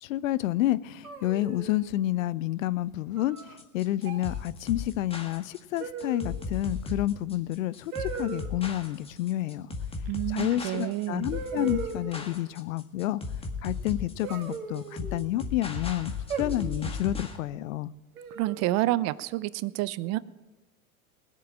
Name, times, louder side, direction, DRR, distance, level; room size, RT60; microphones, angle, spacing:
voice 1, 0.0-9.7 10.3-13.2 13.6-16.1 16.4-17.9, left 14 dB, 65° left, 19 dB, 0.6 m, -29 dB
sound 1, 1.0-1.9 3.2-3.6 4.0-4.4 5.8-6.4 7.9-8.5 10.4-10.5 11.3-12.3 14.2-15.3 16.3-16.9 18.2-18.7, right 6 dB, 80° right, 1.8 m, -38 dB
sound 2, 3.4-17.4, left 4 dB, 15° left, 1.8 m, -36 dB
voice 2, 10.1-11.3 18.3-20.2, right 17 dB, 40° right, 19 dB, 0.6 m, -29 dB
20.0 x 7.4 x 7.4 m, 1.1 s
hypercardioid pair, 90°, 43 cm